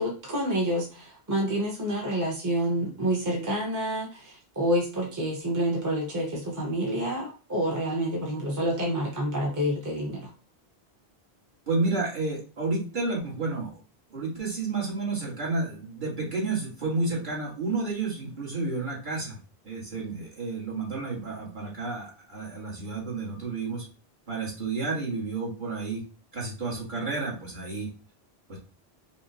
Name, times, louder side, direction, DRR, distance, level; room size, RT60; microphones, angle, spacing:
voice 1, 0.0-10.3, right 1 dB, 20° right, -2 dB, 0.9 m, -28 dB
voice 2, 11.7-13.8 14.1-19.4 19.6-23.8 24.3-26.0 26.3-27.9 28.5-28.6, right 3 dB, 50° right, -5 dB, 2.0 m, -31 dB
5.5 x 2.3 x 2.9 m, 0.35 s
omnidirectional pair, 1.1 m